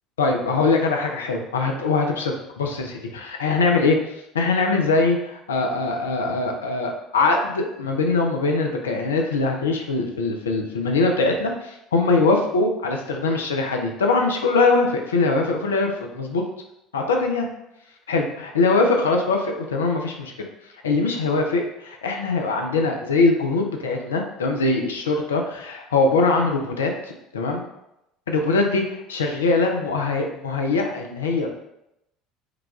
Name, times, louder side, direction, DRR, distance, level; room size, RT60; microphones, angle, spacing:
voice 1, 0.2-16.4 16.9-17.5 18.1-20.3 20.8-26.9 27.3-27.6 28.3-31.6, left 3 dB, 80° left, 2 dB, 0.4 m, -22 dB
4.7 x 2.3 x 2.4 m, 0.85 s
hypercardioid pair, 65°, 0 cm